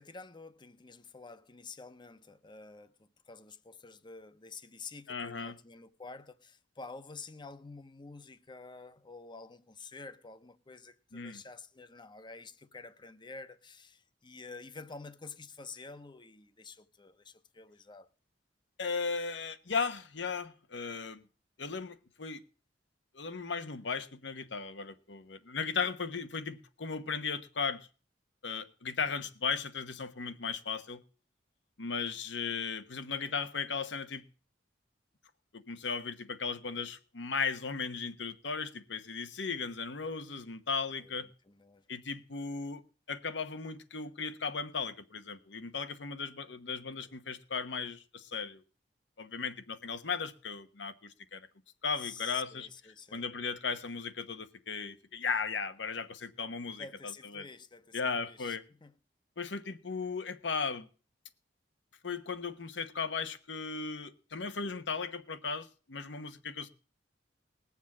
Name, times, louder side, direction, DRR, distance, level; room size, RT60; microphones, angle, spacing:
voice 1, 0.0-18.1 33.2-33.4 41.0-41.9 47.0-47.1 52.0-53.2 56.8-58.9, left 4 dB, 25° left, 0.8 m, -49 dB
voice 2, 5.1-5.5 11.1-11.4 18.8-21.2 21.6-22.4 23.1-27.8 28.4-31.0 31.8-34.2 35.5-41.3 41.9-42.8 43.1-48.6 49.2-51.4 51.8-52.7 53.1-57.5 57.9-58.6 59.4-60.9 62.0-66.7, left 5 dB, 80° left, 1.1 m, -36 dB
19.5 x 7.3 x 7.2 m
head